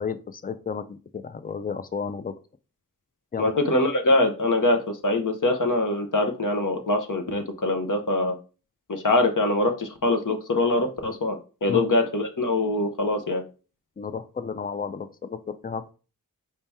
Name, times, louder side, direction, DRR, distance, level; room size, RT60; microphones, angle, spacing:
voice 1, 0.0-2.4 3.3-3.5 11.7-11.8 14.0-15.9, left 6 dB, 25° left, 12 dB, 0.4 m, -32 dB
voice 2, 3.4-8.3 8.9-13.4, left 2 dB, 60° left, 4 dB, 0.8 m, -23 dB
4.5 x 2.8 x 3.5 m, 0.35 s
wide cardioid pair, 45°, 35 cm